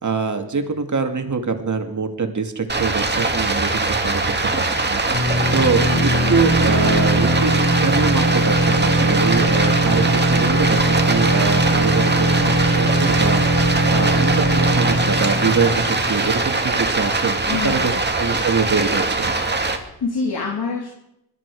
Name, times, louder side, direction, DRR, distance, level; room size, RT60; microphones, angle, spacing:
voice 1, 0.0-5.0 5.5-13.4 13.9-19.3, right 5 dB, 50° right, 5 dB, 2.3 m, -24 dB
Stream, 2.7-19.8, right 3 dB, 25° right, 2.2 m, -22 dB
sound 1, 5.1-16.6, right 1 dB, 40° left, 5.9 m, -20 dB
voice 2, 17.4-18.0 19.5-20.9, left 4 dB, 70° left, 0 dB, 2.7 m, -27 dB
20.5 x 13.5 x 4.9 m, 0.81 s
cardioid pair, 80°, 39 cm